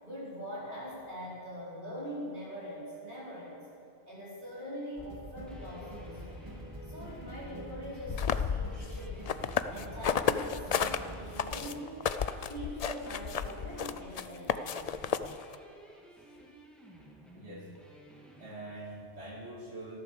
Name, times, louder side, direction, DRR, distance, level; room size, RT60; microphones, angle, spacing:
voice 1, 0.0-3.7 4.1-6.4 6.9-9.3 9.7-12.0 12.4-14.9, equal, 40° right, -7 dB, 5.0 m, -43 dB
sound 1, 5.0-11.4, equal, 25° right, 2.3 m, -45 dB
sound 2, 5.5-18.5, equal, ahead, 2.1 m, -55 dB
sound 3, 8.1-11.0 11.4-15.5, left 7 dB, 55° left, 0.4 m, -32 dB
voice 2, 17.3-17.7 18.4-20.0, right 1 dB, 80° right, -4 dB, 3.3 m, -44 dB
14.0 x 13.0 x 6.9 m, 2.6 s
omnidirectional pair, 1.2 m